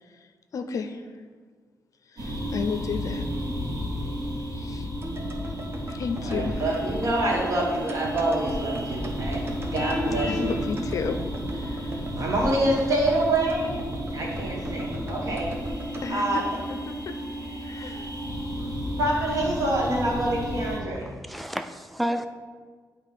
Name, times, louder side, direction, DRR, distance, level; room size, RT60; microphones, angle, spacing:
voice 1, 0.1-1.2 2.1-3.3 4.5-4.9 5.9-6.7 10.1-11.2 11.5-12.3 16.0-16.4 16.7-17.1 17.6-18.1, left 5 dB, 60° left, 7 dB, 0.5 m, -33 dB
sound 1, 2.2-20.8, equal, 80° right, 1.5 m, -33 dB
sound 2, 5.0-17.2 17.5-17.6, right 1 dB, 40° right, 0.9 m, -37 dB
voice 2, 6.2-10.5 12.1-13.8 14.1-15.5 16.1-16.6 18.6-21.1, right 1 dB, 60° right, -3 dB, 1.8 m, -26 dB
Vehicle horn car horn honking, 9.7-10.5, equal, 35° left, 0.9 m, -30 dB
voice 3, 21.0-22.3, equal, ahead, 8 dB, 0.3 m, -31 dB
8.6 x 3.0 x 5.1 m, 1.6 s
wide cardioid pair, 115°, 6 cm